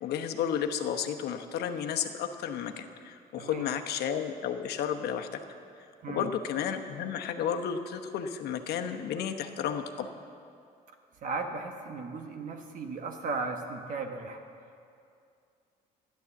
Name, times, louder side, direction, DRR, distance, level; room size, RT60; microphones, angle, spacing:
voice 1, 0.0-5.4 6.1-10.1, left 8 dB, 70° left, 6 dB, 1.0 m, -32 dB
voice 2, 11.2-14.4, right 4 dB, 50° right, 3 dB, 1.2 m, -36 dB
12.5 x 10.5 x 7.1 m, 2.5 s
cardioid pair, 110°, 17 cm